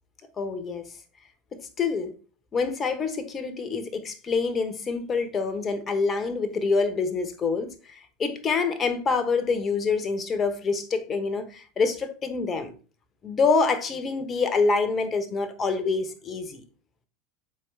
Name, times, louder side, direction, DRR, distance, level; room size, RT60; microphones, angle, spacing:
voice 1, 0.4-0.9 1.5-2.1 2.5-12.7 13.2-16.6, left 4 dB, 25° left, 1.1 m, -26 dB
7.3 x 4.7 x 3.3 m
figure-of-eight pair, 80°, 0 cm